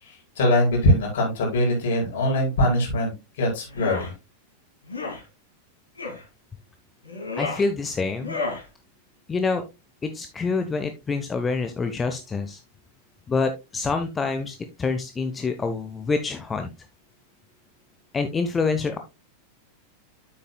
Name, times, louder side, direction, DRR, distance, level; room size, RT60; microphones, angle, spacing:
voice 1, 0.0-3.1 3.4-4.1, left 1 dB, 55° left, -1 dB, 5.0 m, -22 dB
sound 1, 3.7-4.1 4.9-5.2 6.0-6.2 7.0-7.6 8.2-8.6, left 3 dB, 75° left, 2.5 m, -31 dB
voice 2, 7.4-8.4 9.3-9.6 10.0-12.6 13.3-16.7 18.1-19.0, left 4 dB, 15° left, 7 dB, 0.9 m, -26 dB
9.3 x 7.7 x 2.2 m, 0.25 s
figure-of-eight pair, 90°, 0 cm